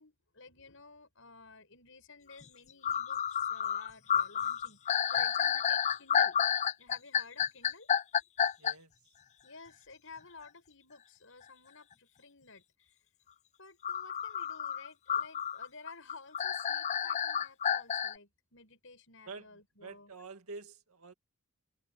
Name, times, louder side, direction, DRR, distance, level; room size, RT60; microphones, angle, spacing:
voice 1, 0.0-6.4 6.8-7.9 9.4-12.9 13.6-20.1, left 4 dB, 65° left, 6.9 m, -54 dB
sound 1, 2.4-2.5 2.8-8.7 13.8-18.1, left 8 dB, 30° left, 0.3 m, -30 dB
voice 2, 8.6-8.9 19.3-19.5 19.8-21.1, right 4 dB, 85° right, 2.1 m, -47 dB
head